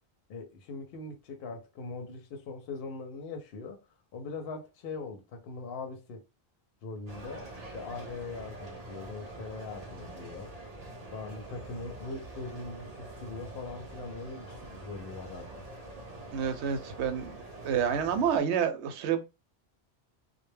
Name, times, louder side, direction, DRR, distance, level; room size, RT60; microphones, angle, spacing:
voice 1, 0.3-3.8 4.1-6.2 6.8-10.5 11.1-15.6, left 3 dB, 65° left, 0.8 m, -41 dB
sound 1, 7.1-18.4, right 2 dB, 40° right, 0.8 m, -45 dB
voice 2, 16.3-17.4 17.6-19.2, right 8 dB, 80° right, 0.8 m, -28 dB
2.1 x 2.1 x 3.1 m
omnidirectional pair, 1.1 m